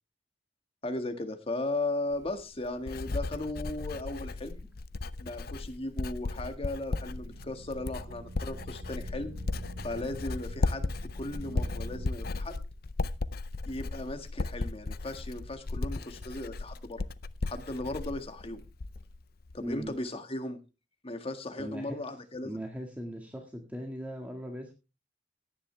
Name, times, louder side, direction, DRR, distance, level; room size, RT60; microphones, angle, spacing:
voice 1, 0.8-4.6 5.2-9.3 9.8-12.5 13.6-17.0 17.4-18.6 19.5-20.6 21.0-22.6, left 2 dB, 30° left, 7 dB, 1.7 m, -36 dB
Writing, 2.1-19.2 19.5-19.9, left 3 dB, 55° left, 0.6 m, -36 dB
sound 1, 6.9-12.1, right 2 dB, 65° right, 0.9 m, -46 dB
voice 2, 19.6-19.9 21.6-22.0 22.4-24.7, equal, 10° right, 2 dB, 1.9 m, -39 dB
17.5 x 10.0 x 3.3 m, 0.30 s
head